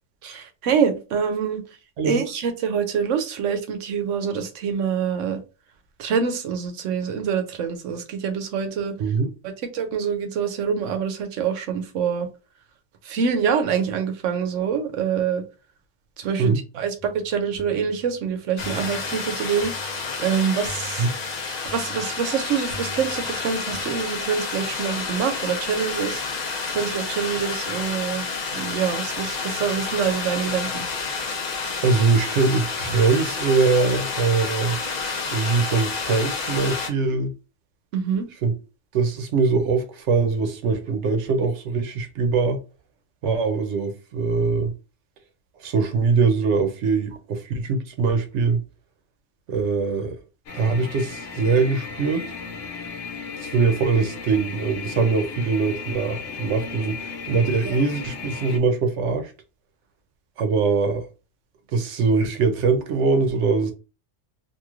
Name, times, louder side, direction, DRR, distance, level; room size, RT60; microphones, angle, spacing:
voice 1, 0.2-1.6 2.0-5.4 6.0-8.9 9.4-12.3 13.0-15.4 16.2-19.7 20.2-21.1 21.7-26.2 26.7-30.9 37.9-38.3 57.7-57.8, right 7 dB, 90° right, 1.0 m, -25 dB
sound 1, 17.0-23.8, right 2 dB, 60° left, 1.0 m, -44 dB
sound 2, 18.6-36.9, left 4 dB, 45° left, 0.6 m, -30 dB
voice 2, 31.8-34.8 35.3-37.3 38.4-38.5 38.9-42.6 43.2-44.7 45.6-48.6 49.5-50.1 50.5-52.2 53.4-59.3 60.4-61.1 61.7-63.7, right 4 dB, 75° right, 0.9 m, -22 dB
sound 3, 50.5-58.6, left 5 dB, 90° left, 1.0 m, -35 dB
3.0 x 2.6 x 2.4 m
omnidirectional pair, 1.2 m